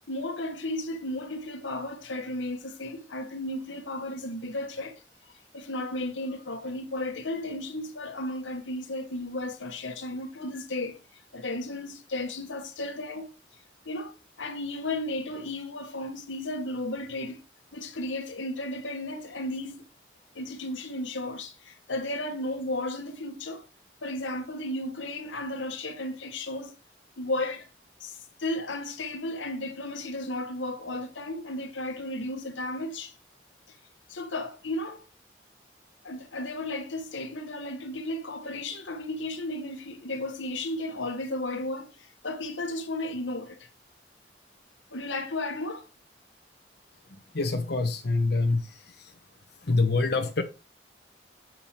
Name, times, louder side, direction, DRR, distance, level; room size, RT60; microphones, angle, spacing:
voice 1, 0.1-13.3 13.8-17.4 17.7-19.8 20.3-23.7 24.0-26.7 27.2-27.7 28.0-33.2 33.7-33.8 34.1-35.0 36.0-43.7 44.9-45.9, left 1 dB, 85° left, 1.4 m, -34 dB
voice 2, 47.3-49.1 49.6-50.4, left 3 dB, 60° left, 1.0 m, -26 dB
7.5 x 5.7 x 4.4 m
head